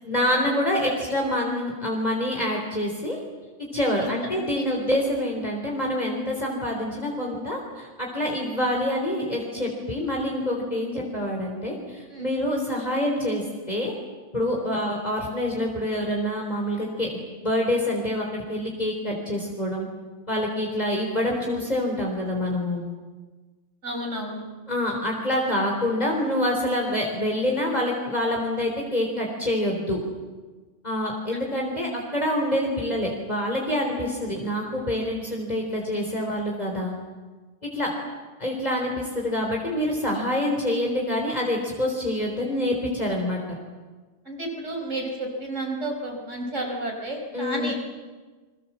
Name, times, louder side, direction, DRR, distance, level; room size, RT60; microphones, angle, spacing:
voice 1, 0.0-3.2 3.7-13.9 14.3-19.9 20.3-22.8 24.7-30.0 30.8-36.9 37.7-37.9 38.4-43.4 47.3-47.7, left 1 dB, 30° left, -1 dB, 4.0 m, -26 dB
voice 2, 23.8-24.4 44.3-47.8, right 1 dB, 70° right, 2 dB, 5.2 m, -31 dB
28.5 x 23.5 x 7.4 m, 1.3 s
omnidirectional pair, 1.3 m